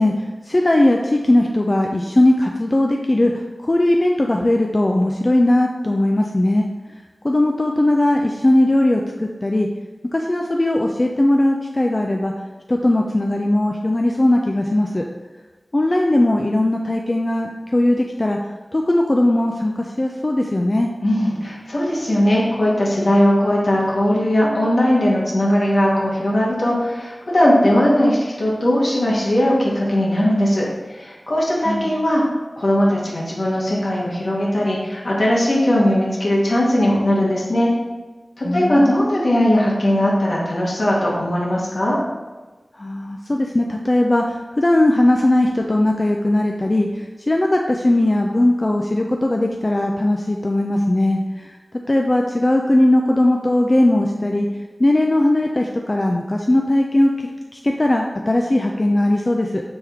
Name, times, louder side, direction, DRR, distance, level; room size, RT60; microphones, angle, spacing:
voice 1, 0.0-6.7 7.2-9.7 10.1-12.3 12.7-15.0 15.7-18.4 18.7-20.9 31.7-31.9 38.4-39.0 42.7-51.6 51.9-54.5 54.8-59.6, left 1 dB, 35° left, 1 dB, 0.3 m, -18 dB
voice 2, 21.0-32.2 32.6-37.7 38.4-42.0, left 1 dB, 70° left, -5 dB, 1.2 m, -19 dB
4.3 x 3.5 x 3.5 m, 1.2 s
wide cardioid pair, 60°, 0 cm